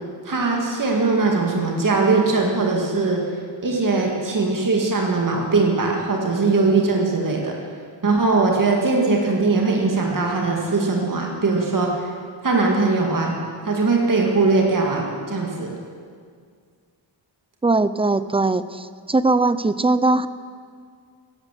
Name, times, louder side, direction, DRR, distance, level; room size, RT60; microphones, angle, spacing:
voice 1, 0.2-3.2 3.6-7.6 8.0-12.1 12.4-13.3 13.6-15.8, right 3 dB, 45° right, 0 dB, 2.1 m, -20 dB
voice 2, 17.6-20.3, right 2 dB, 15° right, 14 dB, 0.4 m, -20 dB
16.0 x 12.0 x 7.5 m, 2.1 s
wide cardioid pair, 145°, 46 cm